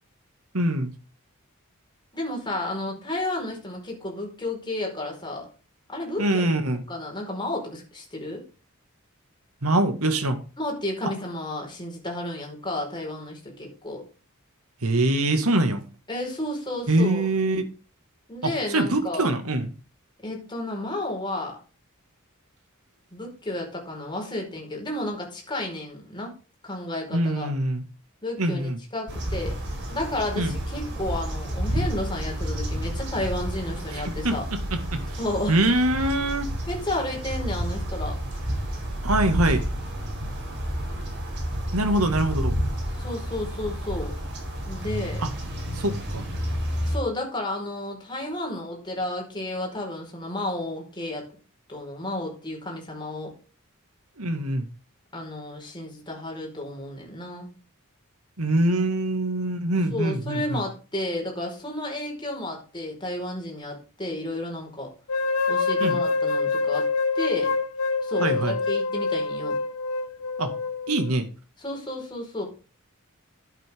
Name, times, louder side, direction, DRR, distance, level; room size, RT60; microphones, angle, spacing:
voice 1, 0.5-0.9 6.2-6.8 9.6-10.4 14.8-15.8 16.9-17.7 18.4-19.7 27.1-27.8 28.4-28.8 30.4-30.6 33.9-35.2 35.5-36.5 39.0-39.6 41.7-42.6 45.2-45.3 45.8-46.2 54.2-54.7 58.4-60.6 65.8-66.0 68.2-68.6 70.4-70.5 70.9-71.3, right 1 dB, 85° right, 2.0 m, -24 dB
voice 2, 2.1-5.5 5.9-6.4 6.9-8.4 10.6-14.0 16.1-17.3 18.3-19.3 20.2-21.6 23.1-26.4 26.6-27.5 28.2-29.6 29.9-34.4 35.2-35.6 36.7-38.2 43.0-44.1 44.7-45.2 46.8-51.2 51.7-53.3 55.1-57.5 59.9-64.9 65.5-66.9 67.1-67.5 68.0-69.6 71.6-72.4, left 1 dB, 20° left, 4.9 m, -32 dB
sound 1, 29.1-47.0, equal, 55° right, 4.9 m, -30 dB
sound 2, 65.1-71.1, left 4 dB, 90° left, 1.2 m, -26 dB
11.5 x 8.8 x 3.7 m
head